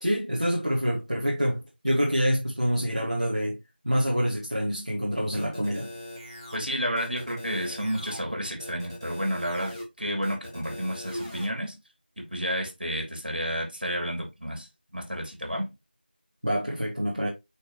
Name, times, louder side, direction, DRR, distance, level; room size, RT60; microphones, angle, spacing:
voice 1, 0.0-3.6 3.8-5.9 16.4-17.3, equal, 40° right, 1.6 m, -26 dB
sound 1, 5.3-6.6 7.0-8.2 8.6-9.8 10.2-11.5, left 1 dB, 20° right, 1.9 m, -40 dB
voice 2, 6.5-11.7 12.2-14.7 14.9-15.7, equal, 60° right, 3.3 m, -31 dB
8.8 x 3.5 x 3.2 m
figure-of-eight pair, 180°, 6 cm